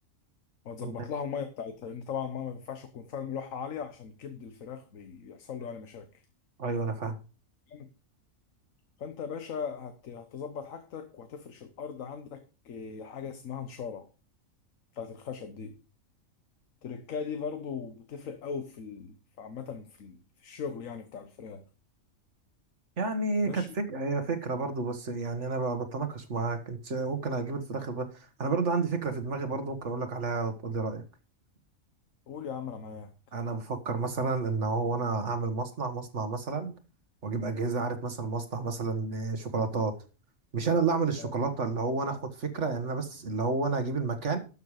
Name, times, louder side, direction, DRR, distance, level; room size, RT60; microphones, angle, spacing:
voice 1, 0.6-6.1 7.7-7.9 9.0-14.1 14.9-15.8 16.8-21.6 23.4-23.7 32.3-33.1 41.2-41.3, left 6 dB, 75° left, 1.4 m, -39 dB
voice 2, 6.6-7.2 23.0-31.0 33.3-36.7 37.2-39.9 40.5-44.4, right 4 dB, 60° right, 1.8 m, -30 dB
12.5 x 6.9 x 4.9 m
omnidirectional pair, 1.4 m